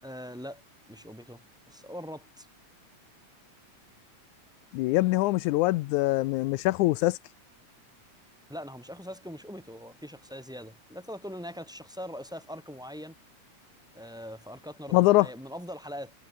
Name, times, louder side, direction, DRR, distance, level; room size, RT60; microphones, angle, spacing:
voice 1, 0.0-0.6 0.9-2.5 8.5-13.2 13.9-16.1, equal, ahead, 6.5 m, -42 dB
voice 2, 4.7-7.2 14.9-15.3, left 19 dB, 85° left, 2.0 m, -23 dB
omnidirectional pair, 3.4 m